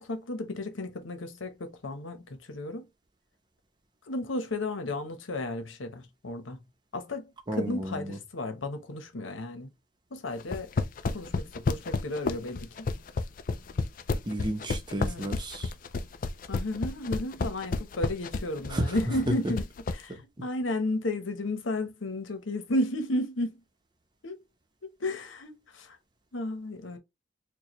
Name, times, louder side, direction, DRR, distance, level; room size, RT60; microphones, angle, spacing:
voice 1, 0.0-2.9 4.1-6.6 6.9-9.7 10.1-10.7 11.1-12.9 15.0-15.3 16.5-19.6 19.9-23.6 24.2-24.3 25.0-26.0 26.3-27.0, left 1 dB, 90° left, 0.9 m, -33 dB
voice 2, 7.5-8.2 14.3-15.7 18.7-18.9 20.1-20.2, right 1 dB, 25° right, 0.8 m, -32 dB
sound 1, 10.4-20.0, left 3 dB, 45° left, 0.4 m, -30 dB
4.7 x 2.3 x 3.0 m
head